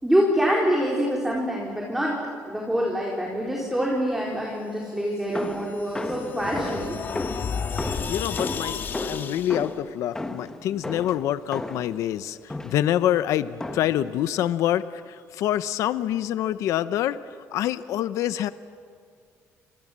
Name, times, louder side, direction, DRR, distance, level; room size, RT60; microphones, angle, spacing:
voice 1, 0.0-2.2 2.5-6.9, equal, 5° right, -3 dB, 4.3 m, -25 dB
sound 1, 5.2-9.7, left 6 dB, 40° left, 1.6 m, -33 dB
sound 2, 5.3-12.0 12.5-13.0 13.6-14.1, left 2 dB, 10° left, 1.4 m, -34 dB
voice 2, 8.1-17.2 17.5-18.5, left 12 dB, 75° left, 13 dB, 0.8 m, -26 dB
30.0 x 26.5 x 7.5 m, 2.2 s
cardioid pair, 155°, 5 cm